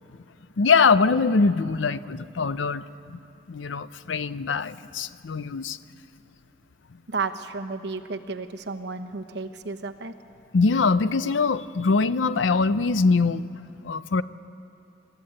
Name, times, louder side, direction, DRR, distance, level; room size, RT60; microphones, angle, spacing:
voice 1, 0.6-2.8 3.1-3.2 3.5-5.8 10.5-13.5 13.8-14.2, left 4 dB, 90° left, 15 dB, 0.6 m, -22 dB
voice 2, 7.1-10.1, right 4 dB, 65° right, 6 dB, 1.1 m, -32 dB
26.5 x 13.5 x 8.9 m, 2.7 s
head